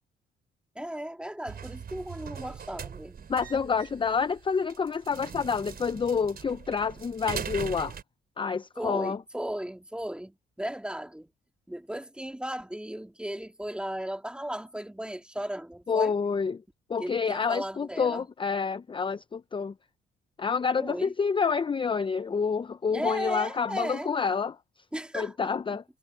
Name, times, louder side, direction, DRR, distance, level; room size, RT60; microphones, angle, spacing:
voice 1, 0.8-3.3 8.8-11.3 11.7-16.1 17.0-18.3 20.8-21.1 22.9-24.1 24.9-25.8, right 1 dB, 5° right, 2.1 m, -36 dB
sound 1, 1.5-8.0, right 7 dB, 50° right, 4.6 m, -40 dB
voice 2, 3.3-7.9 8.4-9.2 15.9-16.6 16.9-19.7 20.4-24.6 25.1-25.8, left 5 dB, 25° left, 0.6 m, -28 dB
cardioid pair, 90°, 20 cm